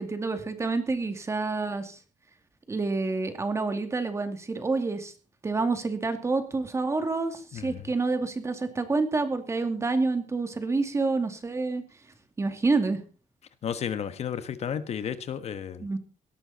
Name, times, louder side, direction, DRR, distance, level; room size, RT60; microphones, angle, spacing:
voice 1, 0.0-2.0 2.7-5.1 5.4-11.8 12.4-13.0 15.8-16.0, right 3 dB, 20° right, 8 dB, 2.3 m, -28 dB
voice 2, 7.5-7.8 13.6-15.9, left 8 dB, 55° left, 12 dB, 1.3 m, -33 dB
18.0 x 13.5 x 4.2 m, 0.35 s
wide cardioid pair, 170°, 13 cm